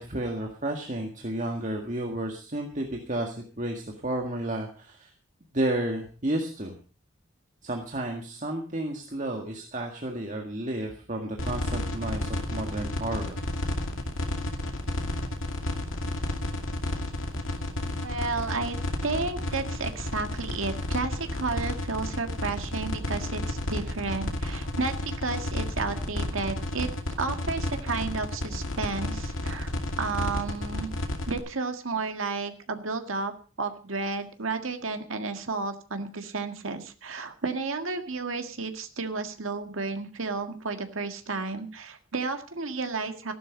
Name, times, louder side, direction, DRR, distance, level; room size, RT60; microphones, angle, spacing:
voice 1, 0.0-5.1 5.5-6.8 7.6-13.4, right 1 dB, 40° right, 2 dB, 1.8 m, -32 dB
sound 1, 11.4-31.4, left 1 dB, 85° left, 2.5 m, -31 dB
voice 2, 18.0-18.8 19.0-26.9 27.2-29.7 30.0-30.9 31.2-33.3 33.6-43.3, right 4 dB, 90° right, 7 dB, 1.7 m, -32 dB
14.5 x 12.0 x 5.2 m, 0.38 s
head